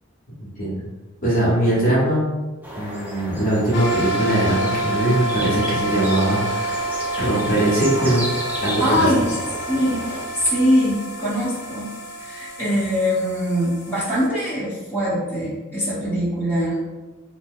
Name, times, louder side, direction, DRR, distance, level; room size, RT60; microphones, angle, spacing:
voice 1, 0.4-0.8 1.2-2.3 2.8-8.2 8.6-9.1, right 1 dB, 40° left, -8 dB, 0.8 m, -21 dB
sound 1, 2.6-10.2, equal, 10° right, 0.4 m, -34 dB
sound 2, 3.7-14.3, right 1 dB, 60° left, 0.5 m, -28 dB
voice 2, 8.8-9.4 9.7-11.9 12.2-16.8, equal, 10° left, -10 dB, 1.0 m, -22 dB
2.7 x 2.1 x 3.5 m, 1.2 s
head